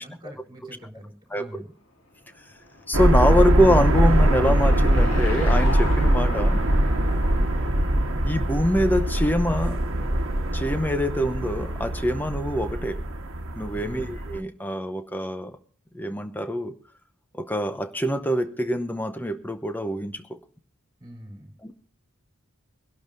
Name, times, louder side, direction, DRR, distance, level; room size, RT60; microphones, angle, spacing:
voice 1, 0.0-1.8 13.7-14.2 21.0-21.6, equal, 20° right, 3.5 m, -44 dB
Car passing by / Engine, 2.2-9.0, left 1 dB, 65° left, 2.7 m, -37 dB
voice 2, 2.9-6.6 8.2-9.8 10.5-13.0 13.5-15.6 15.9-16.8 17.3-20.4 21.6-21.7, equal, 10° left, 0.7 m, -24 dB
sound 1, 2.9-14.4, right 1 dB, 65° right, 1.3 m, -22 dB
24.0 x 12.0 x 2.6 m
head